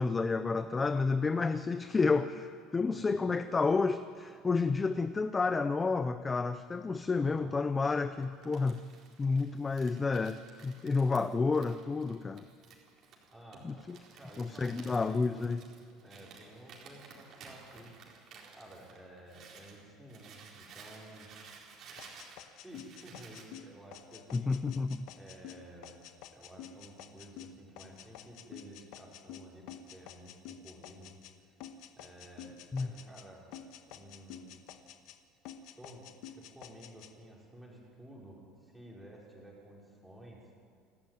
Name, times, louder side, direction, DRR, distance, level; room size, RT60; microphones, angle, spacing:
voice 1, 0.0-8.8 9.2-12.5 13.6-14.0 14.4-15.6 24.3-25.1 32.7-32.9, left 4 dB, 15° left, 11 dB, 0.5 m, -30 dB
Crumpling crinkling, 8.2-19.8 20.1-23.5, right 5 dB, 40° right, 4.2 m, -54 dB
voice 2, 13.3-13.7 14.2-14.8 15.1-15.5 16.0-17.9 18.5-21.3 22.5-24.6 25.1-25.9 26.3-31.2 32.0-33.6 33.9-34.5 35.7-40.4, right 1 dB, 5° right, -3 dB, 4.8 m, -53 dB
sound 1, 22.0-31.3 31.6-33.3 33.5-35.2 35.5-37.1, left 9 dB, 60° left, 1.3 m, -49 dB
28.5 x 12.0 x 9.1 m, 2.1 s
cardioid pair, 165°, 0 cm